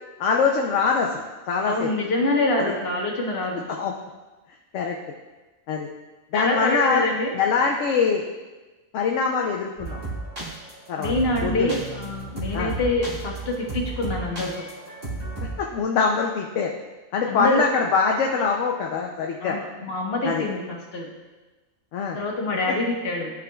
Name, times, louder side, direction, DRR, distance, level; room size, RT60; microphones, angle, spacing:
voice 1, 0.2-1.9 2.6-2.7 3.8-3.9 4.7-5.0 5.7-5.9 6.3-7.1 7.3-8.2 8.9-10.0 10.9-11.1 11.4-11.8 12.5-12.7 15.6-16.8 17.1-19.6 20.2-20.5 21.9-22.2 22.7-22.8, left 5 dB, 70° left, 1 dB, 0.9 m, -23 dB
voice 2, 1.7-3.6 6.3-7.3 11.0-14.6 17.3-17.6 19.4-21.1 22.1-23.3, left 2 dB, 50° left, -2 dB, 1.4 m, -25 dB
sound 1, 9.8-15.6, right 3 dB, 45° right, 2.1 m, -33 dB
12.0 x 5.1 x 2.3 m, 1.2 s
omnidirectional pair, 1.4 m